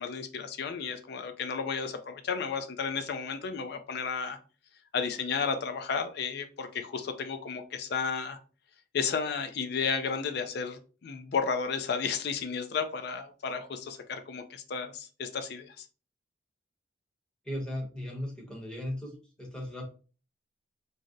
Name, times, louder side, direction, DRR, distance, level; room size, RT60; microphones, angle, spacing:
voice 1, 0.0-4.4 4.9-8.4 8.9-15.9, left 5 dB, 55° left, 8 dB, 0.4 m, -33 dB
voice 2, 17.4-19.8, left 1 dB, 5° left, -2 dB, 0.8 m, -37 dB
2.6 x 2.0 x 3.5 m, 0.37 s
head